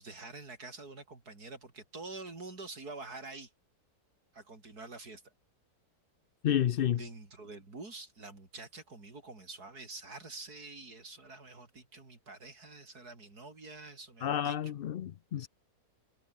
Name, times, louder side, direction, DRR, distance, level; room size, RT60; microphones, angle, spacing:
voice 1, 0.0-3.5 4.3-5.3 7.0-14.7 15.4-15.5, right 3 dB, 80° right, 4.9 m, -47 dB
voice 2, 6.4-7.0 14.2-15.5, left 10 dB, 85° left, 0.5 m, -30 dB
omnidirectional pair, 1.6 m